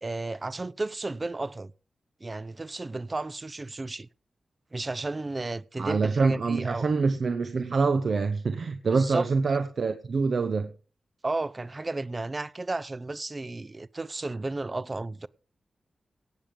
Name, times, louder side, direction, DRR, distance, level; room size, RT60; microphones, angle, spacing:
voice 1, 0.0-1.7 2.2-4.1 4.7-6.9 8.9-9.3 11.2-15.3, right 2 dB, 35° right, 0.7 m, -33 dB
voice 2, 5.8-10.7, right 4 dB, 70° right, 1.1 m, -25 dB
17.5 x 7.6 x 5.3 m
cardioid pair, 50°, 0 cm